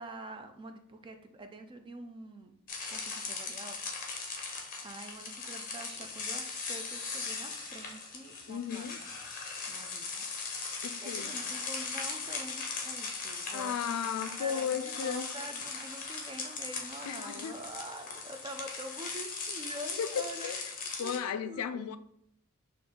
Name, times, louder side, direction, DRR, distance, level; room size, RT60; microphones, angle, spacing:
voice 1, 0.0-2.5 2.9-4.0 4.8-9.1 9.7-14.0 14.4-20.6 21.0-21.9, right 1 dB, 20° right, 6 dB, 0.4 m, -46 dB
sound 1, 2.7-21.2, left 4 dB, 40° left, 0.7 m, -39 dB
voice 2, 8.5-9.0 10.8-11.4 13.5-15.3 17.0-17.6 20.0-20.6 21.0-22.0, left 8 dB, 80° left, 11 dB, 0.3 m, -35 dB
4.1 x 2.5 x 3.6 m, 0.71 s
head